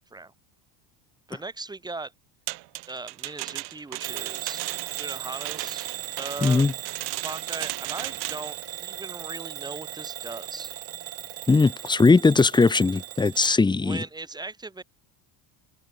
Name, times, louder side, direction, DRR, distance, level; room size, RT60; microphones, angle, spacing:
voice 1, 1.3-2.1 2.9-4.6 4.9-5.9 6.2-6.7 7.2-10.7 13.8-14.8, right 3 dB, 10° right, 5.7 m, -38 dB
sound 1, 2.5-8.5, right 25 dB, 60° right, 3.4 m, -35 dB
Bell / Alarm, 4.0-13.6, right 12 dB, 35° right, 1.6 m, -37 dB
voice 2, 6.4-6.7 11.5-14.0, left 3 dB, 10° left, 1.6 m, -19 dB
cardioid pair, 160°, 43 cm